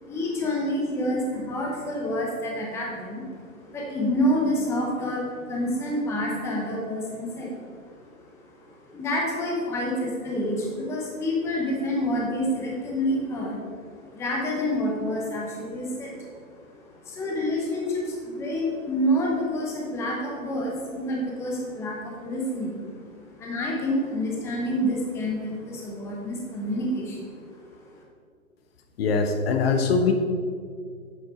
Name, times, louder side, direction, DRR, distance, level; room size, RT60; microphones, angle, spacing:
voice 1, 0.0-3.5 3.7-8.0 8.6-13.6 13.9-16.3 16.9-22.9 23.2-27.4, equal, 5° left, -2 dB, 0.9 m, -28 dB
voice 2, 29.0-30.1, left 5 dB, 45° left, 5 dB, 1.0 m, -22 dB
8.2 x 7.9 x 4.3 m, 2.1 s
hypercardioid pair, 135°, 43 cm